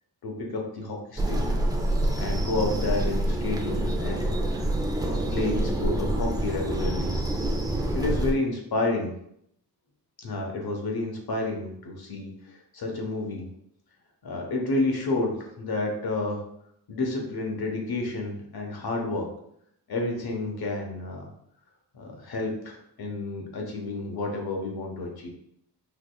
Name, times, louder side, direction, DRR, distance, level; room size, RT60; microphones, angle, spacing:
voice 1, 0.2-1.6 2.2-4.6 5.0-7.1 7.9-9.1 10.2-13.5 14.2-16.4 16.9-19.3 19.9-21.3 21.9-25.3, left 2 dB, 65° left, 1 dB, 1.1 m, -30 dB
sound 1, 1.2-8.3, right 1 dB, 10° right, 0.5 m, -26 dB
4.8 x 2.9 x 2.3 m, 0.72 s
cardioid pair, 75°, 40 cm